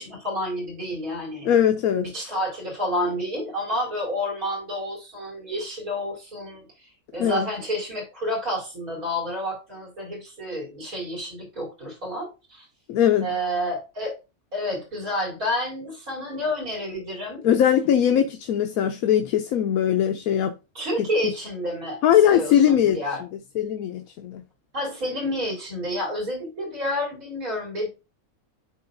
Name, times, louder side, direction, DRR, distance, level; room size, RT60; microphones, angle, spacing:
voice 1, 0.0-1.5 1.9-6.7 7.1-12.7 13.2-14.1 14.5-17.4 20.7-22.0 22.3-23.2 24.7-27.9, equal, 70° right, 4.6 m, -29 dB
voice 2, 1.4-2.1 7.2-7.5 12.9-13.3 17.4-20.6 22.0-23.0 23.6-24.4, left 10 dB, 80° left, 1.1 m, -20 dB
11.5 x 3.9 x 2.5 m
omnidirectional pair, 1.5 m